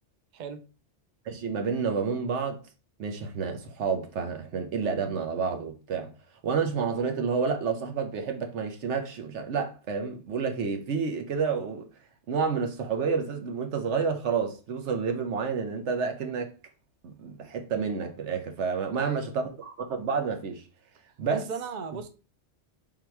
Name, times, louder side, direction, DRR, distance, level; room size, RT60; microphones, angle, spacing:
voice 1, 1.3-2.6 3.0-6.1 6.4-11.9 12.3-16.5 17.0-20.6 21.2-21.4, right 5 dB, 80° right, 1.1 m, -29 dB
voice 2, 18.9-19.3 21.3-22.1, right 5 dB, 50° right, 0.6 m, -36 dB
3.8 x 2.9 x 4.5 m
omnidirectional pair, 1.2 m